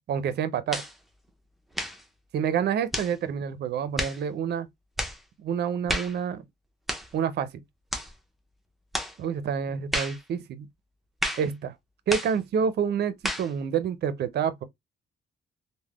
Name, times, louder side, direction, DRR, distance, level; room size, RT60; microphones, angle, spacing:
voice 1, 0.1-0.8 2.3-4.7 5.4-6.4 7.1-7.5 9.2-10.7 11.4-11.7 12.1-14.6, right 7 dB, 55° right, 0.5 m, -28 dB
sound 1, 0.7-1.0 1.7-2.0 2.9-3.2 4.0-4.2 5.0-5.2 5.9-6.2 6.9-7.1 7.9-8.1 8.9-9.2 9.9-10.2 11.2-11.5 12.1-12.4 13.2-13.5, equal, ahead, 0.5 m, -31 dB
3.4 x 2.1 x 2.3 m
cardioid pair, 90°, 20 cm